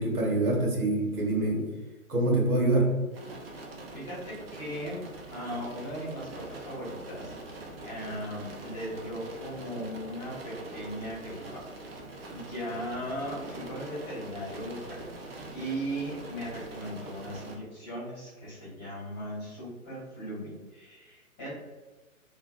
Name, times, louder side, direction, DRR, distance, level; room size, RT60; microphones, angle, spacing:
voice 1, 0.0-1.7 2.1-2.9, right 2 dB, 85° right, -1 dB, 1.0 m, -25 dB
sound 1, 3.1-17.6, right 2 dB, 45° right, 0.4 m, -44 dB
voice 2, 3.9-5.0 5.3-7.3 7.8-11.4 11.8-11.9 12.3-15.1 15.5-21.5, equal, 15° left, -9 dB, 0.7 m, -38 dB
2.6 x 2.0 x 2.4 m, 1.2 s
figure-of-eight pair, 130°, 43 cm